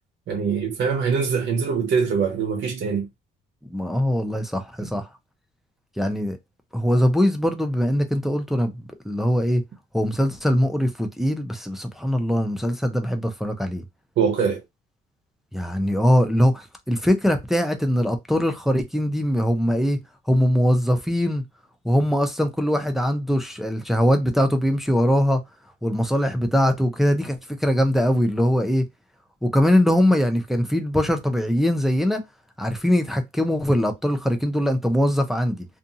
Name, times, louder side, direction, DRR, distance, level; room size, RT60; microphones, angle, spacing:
voice 1, 0.3-3.1 4.8-4.9 14.2-14.6, right 6 dB, 60° right, 0.7 m, -23 dB
voice 2, 3.7-5.1 6.0-6.4 6.7-9.6 9.9-13.8 15.5-20.0 20.3-21.4 21.8-25.4 25.8-28.8 29.4-32.2 32.6-35.7, equal, ahead, 0.5 m, -22 dB
2.5 x 2.4 x 2.7 m
cardioid pair, 90°, 20 cm